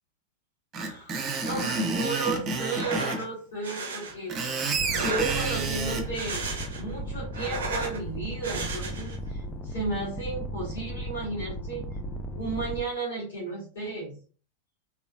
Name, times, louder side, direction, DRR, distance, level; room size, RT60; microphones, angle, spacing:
voice 1, 0.7-1.1 1.4-11.8 12.4-14.2, right 3 dB, 65° left, -7 dB, 1.8 m, -34 dB
Screech, 0.7-3.2 4.1-6.0, right 4 dB, 30° right, 0.7 m, -29 dB
sound 1, 2.6-3.3 3.6-4.1 4.8-5.7 6.0-6.9 7.2-8.0 8.4-9.2, right 3 dB, 65° right, 0.6 m, -34 dB
sound 2, 4.7-12.8, equal, 10° left, 0.5 m, -36 dB
3.4 x 3.1 x 2.5 m, 0.41 s
figure-of-eight pair, 90°, 0 cm